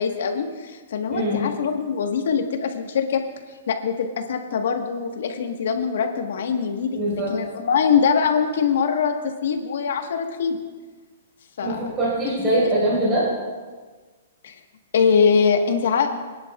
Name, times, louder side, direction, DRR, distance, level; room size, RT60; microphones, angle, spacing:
voice 1, 0.0-3.2 3.7-10.6 11.6-11.8 12.3-12.7 14.4-14.6 14.9-16.1, left 6 dB, 70° left, 5 dB, 1.4 m, -23 dB
voice 2, 1.1-1.5 6.9-7.3 11.6-13.3, right 1 dB, 15° right, -7 dB, 4.3 m, -22 dB
26.0 x 10.5 x 2.4 m, 1.4 s
hypercardioid pair, 165°, 0 cm